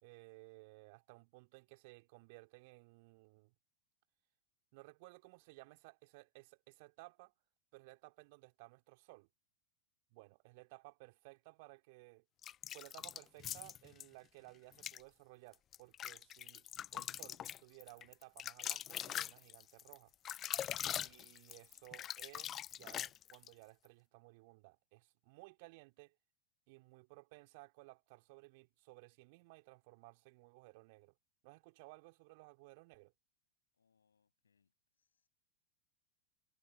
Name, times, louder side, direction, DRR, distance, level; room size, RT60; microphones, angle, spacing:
voice 1, 0.0-3.5 4.7-7.3 7.7-9.3 10.1-12.2 12.7-16.7 16.9-20.1 20.9-26.1 26.7-31.1 31.4-33.1, right 26 dB, 50° right, 3.2 m, -58 dB
sound 1, 12.4-14.1 14.7-15.0 15.5-23.5, left 11 dB, 30° left, 0.3 m, -43 dB
voice 2, 33.8-34.7 35.0-35.3, left 6 dB, 70° left, 6.7 m, -80 dB
figure-of-eight pair, 90°, 0 cm